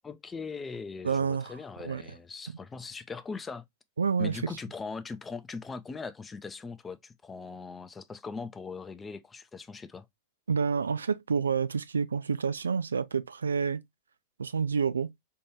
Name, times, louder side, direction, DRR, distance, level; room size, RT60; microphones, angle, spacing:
voice 1, 0.0-3.7 4.2-10.1, left 4 dB, 15° left, 0.5 m, -40 dB
voice 2, 1.0-1.5 1.8-2.0 2.5-2.6 4.0-4.5 10.5-13.8 14.4-15.1, right 6 dB, 70° right, 0.4 m, -28 dB
4.6 x 2.6 x 2.9 m
figure-of-eight pair, 90°, 0 cm